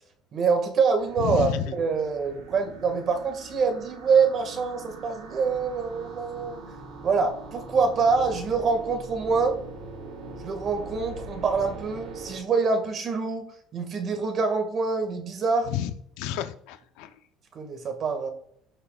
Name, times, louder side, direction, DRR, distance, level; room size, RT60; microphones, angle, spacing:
voice 1, 0.3-1.5 1.8-6.6 7.0-9.6 10.4-15.7 17.5-18.3, right 5 dB, 35° right, 5 dB, 2.0 m, -25 dB
sound 1, 1.0-12.4, right 2 dB, 75° right, 4.1 m, -42 dB
voice 2, 1.2-1.7 15.7-17.1, left 10 dB, 80° left, 9 dB, 0.8 m, -30 dB
17.0 x 6.7 x 2.5 m, 0.69 s
cardioid pair, 150°, 0 cm